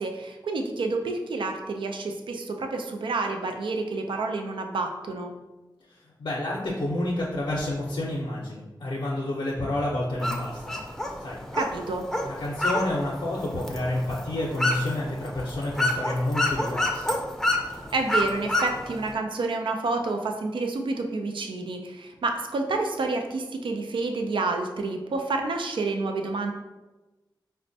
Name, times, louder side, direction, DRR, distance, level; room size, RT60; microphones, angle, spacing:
voice 1, 0.0-5.3 11.5-12.0 17.9-26.5, right 3 dB, 80° right, 4 dB, 0.3 m, -29 dB
voice 2, 5.9-10.9 11.2-11.4 12.2-17.1, left 1 dB, 65° left, -4 dB, 0.5 m, -29 dB
sound 1, 10.2-19.1, left 1 dB, 5° left, 0.5 m, -29 dB
4.2 x 2.1 x 2.6 m, 1.1 s
cardioid pair, 50°, 8 cm